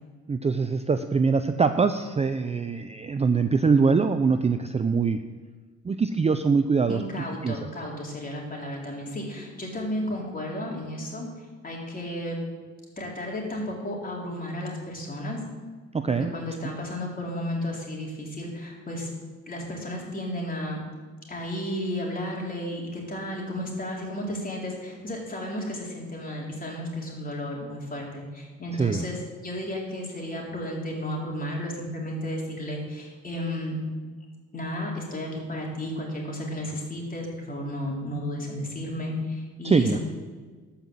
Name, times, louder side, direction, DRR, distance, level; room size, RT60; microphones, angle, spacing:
voice 1, 0.3-5.2 5.8-7.0 7.4-7.6 15.9-16.3 28.8-29.0 39.6-40.0, right 5 dB, 20° right, 9 dB, 0.5 m, -23 dB
voice 2, 6.9-12.4 13.0-15.4 16.1-19.1 19.5-20.8 21.3-33.8 34.5-40.0, left 1 dB, 30° left, -2 dB, 3.7 m, -33 dB
12.5 x 5.8 x 7.7 m, 1.4 s
cardioid pair, 90°, 30 cm